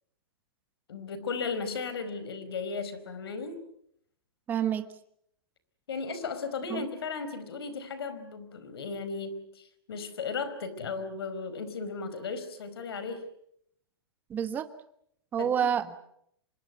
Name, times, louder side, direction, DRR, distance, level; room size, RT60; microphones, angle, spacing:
voice 1, 0.9-3.6 5.9-13.2 15.4-15.7, left 4 dB, 90° left, 13 dB, 4.9 m, -36 dB
voice 2, 4.5-4.9 6.7-6.8 14.3-14.7 15.3-16.0, right 8 dB, 15° right, 9 dB, 1.3 m, -28 dB
25.5 x 22.0 x 8.4 m, 0.72 s
hypercardioid pair, 165°, 12 cm